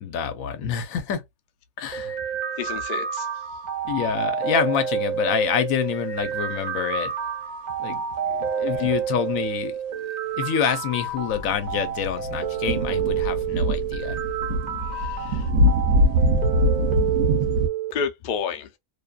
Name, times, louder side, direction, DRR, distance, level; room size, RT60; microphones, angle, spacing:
voice 1, 0.0-1.2 1.8-2.2 3.9-7.1 7.8-8.0 8.3-14.2, left 8 dB, 80° left, 1.0 m, -27 dB
sound 1, 1.9-17.9, right 8 dB, 40° right, 0.7 m, -29 dB
voice 2, 2.6-3.3 8.4-8.5 14.7-15.5 17.9-18.7, left 6 dB, 60° left, 0.5 m, -31 dB
sound 2, 11.2-17.7, equal, 70° right, 0.9 m, -23 dB
2.6 x 2.3 x 2.3 m
omnidirectional pair, 1.4 m